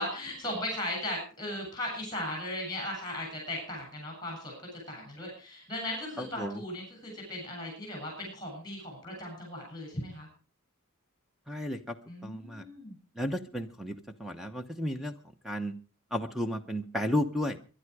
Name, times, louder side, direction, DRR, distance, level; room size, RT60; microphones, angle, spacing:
voice 1, 0.0-4.5 4.9-10.3 12.1-12.9, left 1 dB, 20° left, 1 dB, 7.8 m, -37 dB
voice 2, 6.2-6.6 11.5-12.0 12.2-12.7 13.2-15.1 15.4-15.7 16.1-17.6, left 1 dB, ahead, 6 dB, 0.9 m, -33 dB
22.0 x 11.5 x 4.8 m, 0.37 s
head